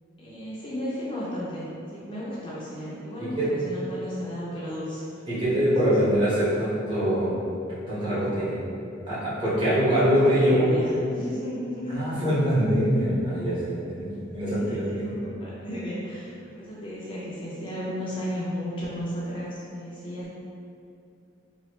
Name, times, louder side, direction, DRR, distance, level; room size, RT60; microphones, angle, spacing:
voice 1, 0.2-5.1 10.0-12.2 14.5-20.3, equal, 25° left, -8 dB, 0.4 m, -34 dB
voice 2, 5.3-7.3 7.9-8.6 9.1-10.9 11.9-14.8, equal, 25° right, -12 dB, 1.1 m, -23 dB
3.0 x 2.4 x 3.0 m, 2.7 s
head